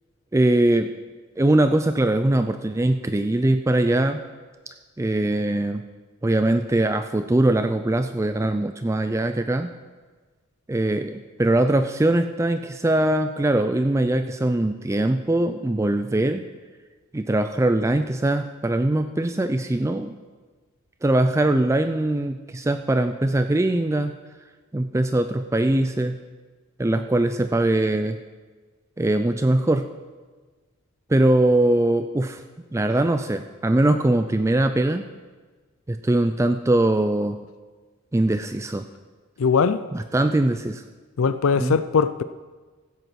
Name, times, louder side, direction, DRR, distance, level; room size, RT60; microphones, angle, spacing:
voice 1, 0.3-0.9 1.4-4.2 5.0-5.8 6.2-9.7 10.7-16.4 17.1-20.1 21.0-24.2 24.7-26.2 26.8-28.2 29.0-29.8 31.1-32.4 32.7-35.1 35.9-37.4 38.1-38.9 39.9-40.8 41.6-41.8, right 1 dB, 15° right, 0.3 m, -21 dB
voice 2, 39.4-39.8 41.2-42.2, left 5 dB, 65° left, 0.4 m, -20 dB
15.5 x 8.1 x 5.9 m
head